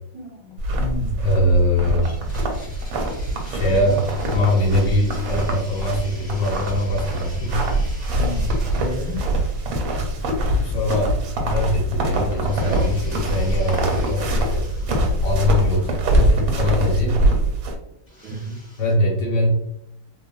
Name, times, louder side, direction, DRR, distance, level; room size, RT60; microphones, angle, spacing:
voice 1, 0.1-1.2 3.7-4.0 8.1-9.2 18.2-18.6, equal, 70° right, -4 dB, 0.9 m, -32 dB
sound 1, 0.6-17.7, right 1 dB, 85° right, 1.3 m, -23 dB
voice 2, 1.2-2.1 3.5-4.1 4.3-7.6 10.6-17.2 18.8-19.5, left 1 dB, 70° left, -2 dB, 1.3 m, -22 dB
Domestic sounds home sounds, 2.0-11.2 11.4-11.5 12.3-16.2 18.1-18.9, left 1 dB, 40° left, 0.6 m, -46 dB
3.1 x 2.2 x 2.3 m, 0.79 s
omnidirectional pair, 2.1 m